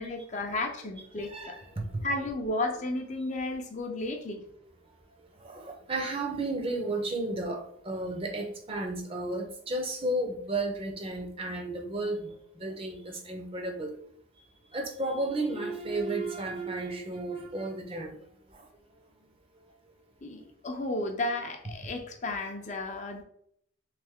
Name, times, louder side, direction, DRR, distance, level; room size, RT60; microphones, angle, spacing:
voice 1, 0.0-1.6 2.0-4.4 20.2-23.2, left 2 dB, 35° left, 3 dB, 0.5 m, -33 dB
voice 2, 1.2-2.1 5.4-13.9 14.7-18.1 18.5-18.6, right 2 dB, 25° right, 3 dB, 0.6 m, -33 dB
3.4 x 3.3 x 3.6 m, 0.66 s
head